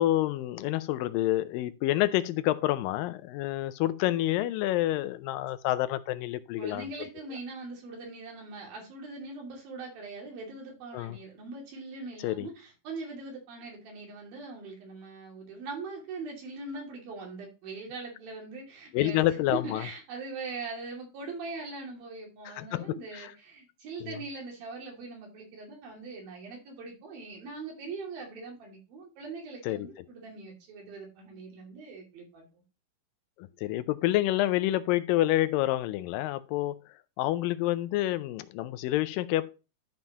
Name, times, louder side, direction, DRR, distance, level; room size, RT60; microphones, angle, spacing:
voice 1, 0.0-6.9 10.9-11.2 12.2-12.5 18.9-19.9 22.5-23.3 24.0-24.2 29.6-29.9 33.4-36.8 37.2-39.5, left 15 dB, 80° left, 2.2 m, -28 dB
voice 2, 6.6-19.2 19.5-32.6, right 3 dB, 90° right, 4.4 m, -41 dB
12.0 x 5.6 x 2.9 m
omnidirectional pair, 4.1 m